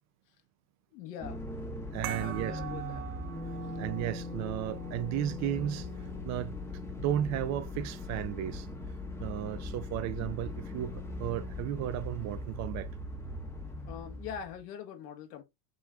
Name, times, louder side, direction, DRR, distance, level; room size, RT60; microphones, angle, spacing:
voice 1, 0.9-1.5 2.1-3.1 3.6-3.7 13.9-15.4, left 8 dB, 85° left, 1.5 m, -43 dB
sound 1, 1.2-14.6, left 2 dB, 5° left, 0.8 m, -40 dB
voice 2, 1.9-2.6 3.8-5.9 6.2-6.6 7.0-8.7 9.2-12.9, right 11 dB, 40° right, 0.5 m, -34 dB
sound 2, 2.0-7.1, right 11 dB, 85° right, 0.9 m, -45 dB
6.0 x 3.5 x 2.3 m
supercardioid pair, 130°, 46 cm